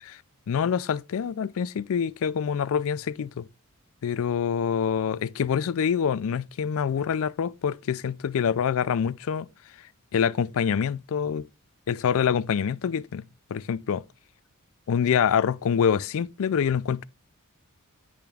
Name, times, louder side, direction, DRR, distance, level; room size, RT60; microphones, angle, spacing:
voice 1, 0.5-3.5 4.0-9.5 10.1-11.5 11.9-13.2 13.5-14.0 14.9-17.0, left 7 dB, 70° left, 0.4 m, -26 dB
10.0 x 3.4 x 3.4 m
head